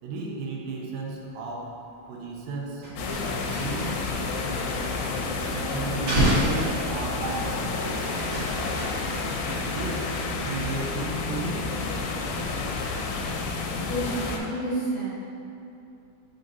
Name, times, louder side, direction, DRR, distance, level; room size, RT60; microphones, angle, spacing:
voice 1, 0.0-1.8 2.1-4.1 5.4-8.1 9.6-10.1 10.4-11.8, right 3 dB, 90° right, -1 dB, 2.4 m, -34 dB
sound 1, 2.3-2.4 2.7-4.1 4.3-5.5 5.9-7.3 8.1-9.3 9.6-10.0 10.3-10.5, right 1 dB, 45° right, 1.8 m, -28 dB
sound 2, 3.0-14.4, left 3 dB, 85° left, 2.4 m, -30 dB
voice 2, 13.7-15.1, right 1 dB, 65° left, -8 dB, 1.9 m, -30 dB
6.3 x 5.6 x 2.7 m, 2.7 s
omnidirectional pair, 4.1 m